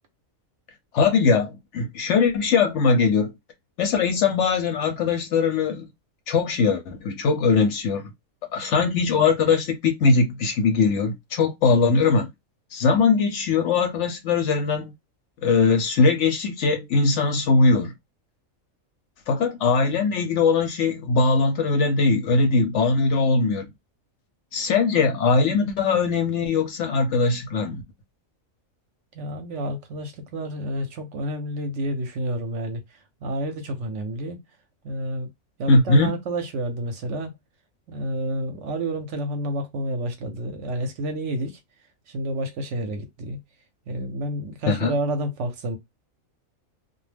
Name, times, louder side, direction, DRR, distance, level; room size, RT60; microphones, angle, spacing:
voice 1, 0.9-3.3 3.8-5.9 6.3-8.1 8.5-12.3 12.7-14.9 15.4-17.9 19.3-23.7 24.5-27.8 35.7-36.1 44.7-45.0, left 4 dB, 65° left, 0.8 m, -21 dB
voice 2, 29.1-34.4 34.8-35.3 35.6-37.3 37.9-41.6 42.1-43.4 43.9-45.8, right 1 dB, 65° right, 0.8 m, -29 dB
2.3 x 2.0 x 3.2 m
omnidirectional pair, 1.5 m